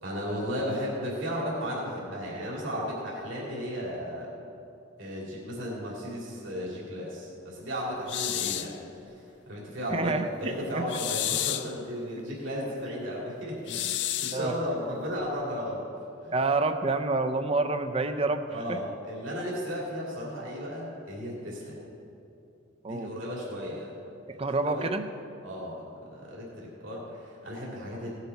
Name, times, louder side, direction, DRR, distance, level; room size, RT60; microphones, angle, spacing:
voice 1, 0.0-4.3 5.0-8.8 9.0-15.8 16.2-16.3 18.5-21.8 22.9-23.9 24.4-24.9 25.4-28.1, equal, 75° right, -5 dB, 2.9 m, -35 dB
sound 1, 8.1-8.8 10.9-11.7 13.7-14.5, left 13 dB, 60° left, 0.4 m, -30 dB
voice 2, 9.9-10.8 14.3-14.5 16.3-18.8 22.8-23.1 24.3-25.0, right 3 dB, 30° right, 8 dB, 0.5 m, -28 dB
17.5 x 8.0 x 4.1 m, 2.6 s
head